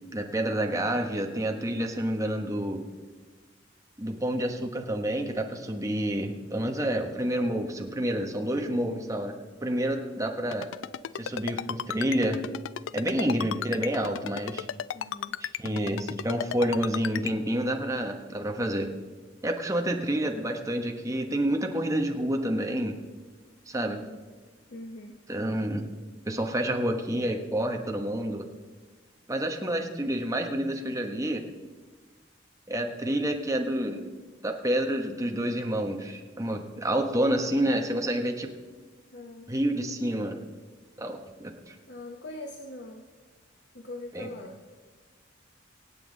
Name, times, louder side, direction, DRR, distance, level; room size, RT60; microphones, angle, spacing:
voice 1, 0.1-2.8 4.0-9.3 9.6-10.7 11.2-12.4 12.9-14.7 15.4-18.9 19.4-23.0 23.7-24.0 25.3-25.9 26.2-28.4 29.3-31.4 32.7-34.1 34.4-38.5 39.5-40.4 41.0-41.7 44.1-44.3, right 1 dB, 15° right, 3 dB, 1.3 m, -29 dB
voice 2, 8.6-9.1 14.9-15.3 23.7-24.2 24.7-25.2 39.1-39.5 41.9-43.0 43.7-44.6, left 2 dB, 65° left, 2 dB, 1.1 m, -42 dB
Ringtone, 10.5-17.3, left 9 dB, 90° left, 0.4 m, -33 dB
25.0 x 8.5 x 4.0 m, 1.4 s
head